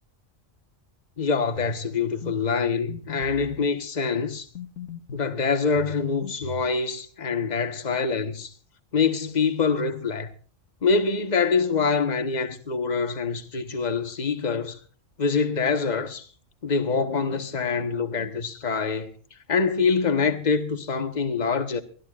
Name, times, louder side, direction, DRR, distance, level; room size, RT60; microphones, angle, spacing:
voice 1, 1.2-4.5 5.1-8.5 8.9-10.3 10.8-14.8 15.2-16.3 16.6-19.1 19.5-21.8, left 5 dB, 35° left, 1.4 m, -25 dB
sound 1, 1.6-1.8 2.2-2.4 2.9-3.6 4.6-5.3 5.8-6.7, left 6 dB, 85° left, 1.8 m, -38 dB
24.0 x 13.5 x 2.4 m
omnidirectional pair, 1.3 m